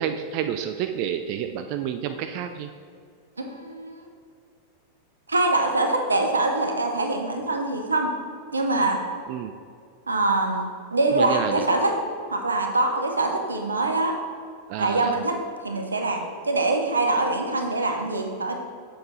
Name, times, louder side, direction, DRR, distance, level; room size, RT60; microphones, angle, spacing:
voice 1, 0.0-2.7 9.3-9.5 11.1-11.6 14.7-15.1, right 9 dB, 45° right, 8 dB, 0.4 m, -29 dB
voice 2, 3.4-4.0 5.3-8.1 8.5-9.0 10.1-12.0 12.3-14.2 14.8-15.4 15.6-18.5, right 2 dB, 75° right, 3 dB, 0.9 m, -24 dB
7.8 x 6.7 x 4.2 m, 2.3 s
figure-of-eight pair, 90°, 0 cm